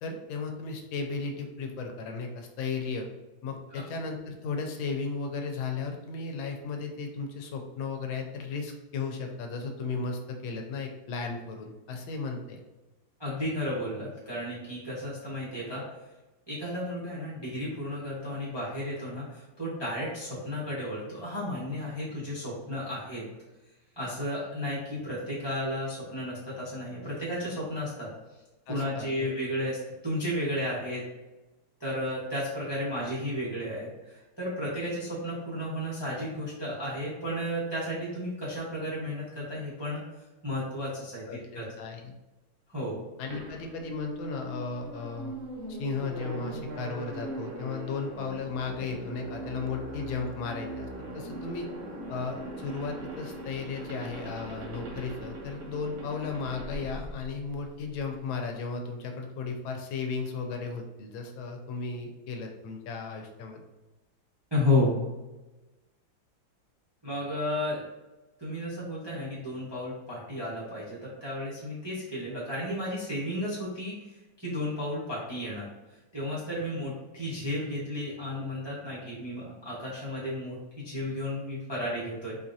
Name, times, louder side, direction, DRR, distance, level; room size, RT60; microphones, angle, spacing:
voice 1, 0.0-3.1 3.4-12.6 28.7-29.4 41.3-42.1 43.2-45.4 45.7-51.7 52.1-63.6, left 4 dB, 80° left, 3 dB, 1.3 m, -35 dB
voice 2, 13.2-15.8 16.5-23.3 24.0-28.1 28.7-29.8 30.0-31.0 31.8-40.0 40.4-41.2 41.5-41.7 42.7-43.0 64.5-65.0 67.0-67.8 68.4-75.7 76.1-82.4, left 1 dB, 25° right, -8 dB, 0.6 m, -33 dB
sound 1, 43.3-58.0, right 1 dB, 65° right, 0.7 m, -40 dB
4.4 x 2.4 x 2.6 m, 1.1 s
omnidirectional pair, 2.2 m